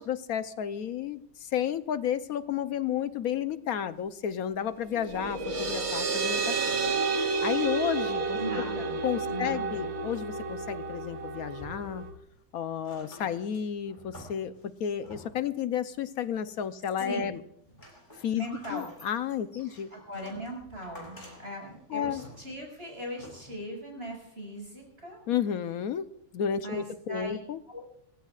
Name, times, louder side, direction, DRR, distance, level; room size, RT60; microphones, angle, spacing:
voice 1, 0.0-6.8 7.4-8.4 9.0-12.0 12.5-17.4 18.2-18.4 18.7-19.9 21.9-22.2 25.3-26.1 26.3-27.6, left 9 dB, 65° left, 12 dB, 1.0 m, -32 dB
sound 1, 4.9-12.1, right 4 dB, 90° right, 2.6 m, -31 dB
voice 2, 8.4-9.0 9.3-9.9 17.0-17.3 18.3-18.9 19.9-25.2 26.6-27.4 27.7-27.8, right 1 dB, 30° right, 0 dB, 6.0 m, -39 dB
sound 2, 11.6-12.4 12.7-15.6 16.2-17.0 17.3-23.8 24.6-24.7, left 1 dB, 25° left, 5.4 m, -51 dB
27.5 x 16.0 x 2.4 m, 0.73 s
omnidirectional pair, 2.1 m